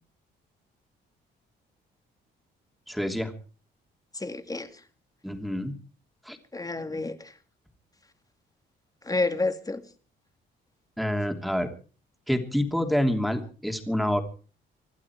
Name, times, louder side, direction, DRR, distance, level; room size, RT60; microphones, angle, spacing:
voice 1, 2.9-3.3 5.2-5.8 6.2-6.4 11.0-11.7 12.3-14.2, equal, ahead, 3.0 m, -27 dB
voice 2, 4.1-4.8 6.5-7.3 9.0-9.8, left 3 dB, 20° left, 2.3 m, -30 dB
26.0 x 11.5 x 4.8 m
cardioid pair, 90°, 20 cm